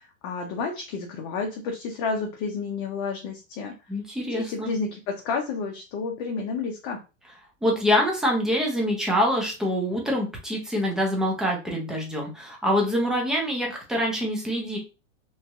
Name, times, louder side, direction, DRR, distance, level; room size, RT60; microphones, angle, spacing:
voice 1, 0.0-3.7 4.3-7.0, left 4 dB, 40° left, 1 dB, 0.7 m, -30 dB
voice 2, 3.9-4.7 7.6-14.8, equal, ahead, -1 dB, 0.5 m, -25 dB
3.1 x 2.6 x 2.3 m, 0.29 s
hypercardioid pair, 135°, 40 cm